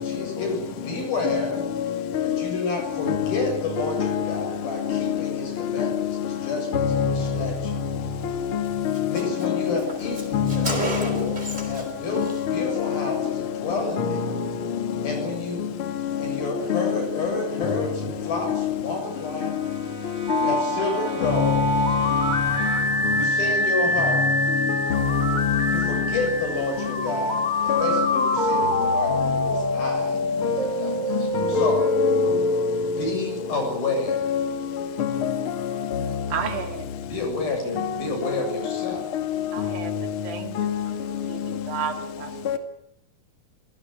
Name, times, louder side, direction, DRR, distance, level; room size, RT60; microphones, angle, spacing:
voice 1, 0.0-1.6 2.2-7.9 9.1-12.3 12.5-14.4 15.0-15.6 16.2-19.5 20.3-21.7 23.1-24.3 25.7-31.2 31.5-31.8 33.0-34.2 37.1-39.0, left 3 dB, 75° left, 9.1 m, -30 dB
voice 2, 1.7-2.5 3.0-5.3 5.6-6.4 6.7-7.7 8.2-9.8 10.3-11.3 11.5-11.6 12.2-13.3 14.0-15.2 15.6-15.7 16.0-16.2 16.7-17.0 17.6-17.9 18.5-18.7 19.4-19.7 20.0-20.6 21.2-22.7 23.0-23.3 24.1-26.1 27.7-28.7 30.4-30.6 31.1-32.4 34.1-36.1 37.8-38.0 38.2-38.3 38.6-40.1 40.6-41.3 42.4-42.6, left 7 dB, 40° left, 2.5 m, -26 dB
Car, 8.2-8.4 8.6-8.7 8.9-11.9 12.2-12.4, equal, 10° right, 4.3 m, -32 dB
Brass instrument, 17.6-23.1, right 3 dB, 45° right, 3.5 m, -40 dB
sound 1, 20.3-34.1, left 1 dB, 15° left, 1.5 m, -25 dB
voice 3, 36.3-36.9 39.5-40.6 40.9-42.6, right 7 dB, 75° right, 4.1 m, -33 dB
26.5 x 17.5 x 8.9 m
omnidirectional pair, 4.2 m